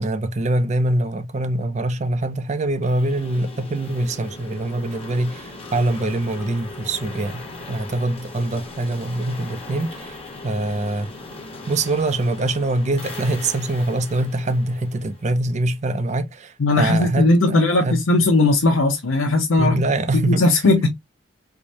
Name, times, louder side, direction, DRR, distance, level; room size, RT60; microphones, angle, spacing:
voice 1, 0.0-10.2 10.4-11.1 11.7-18.2 19.6-20.6, right 2 dB, 35° right, 0.4 m, -24 dB
sound 1, 2.8-15.7, left 2 dB, 30° left, 1.0 m, -38 dB
voice 2, 16.6-19.7 20.2-20.9, left 2 dB, 90° left, 0.8 m, -17 dB
4.6 x 2.2 x 2.6 m
head